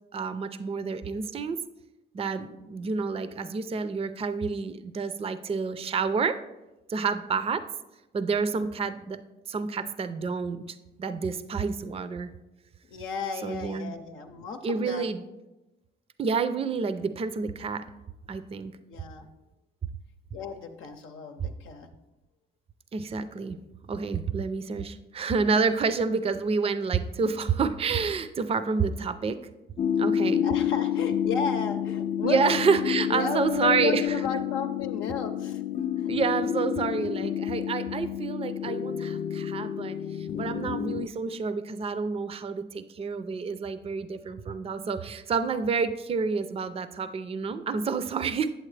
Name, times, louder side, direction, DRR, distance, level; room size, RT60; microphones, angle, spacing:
voice 1, 0.1-1.6 2.1-6.4 6.9-7.6 8.1-9.2 9.5-10.6 11.0-12.3 13.4-13.9 14.6-15.2 16.2-17.8 18.3-18.8 22.9-23.6 23.9-29.4 30.0-30.4 32.2-34.2 36.1-48.5, right 5 dB, 30° right, 12 dB, 0.4 m, -29 dB
voice 2, 12.9-15.1 18.8-19.3 20.3-21.9 30.4-32.4 33.1-35.6 36.0-36.1, left 6 dB, 85° left, 4 dB, 0.7 m, -34 dB
sound 1, 29.8-41.1, left 9 dB, 40° left, 0.4 m, -29 dB
8.1 x 7.7 x 3.2 m, 1.0 s
cardioid pair, 90°, 20 cm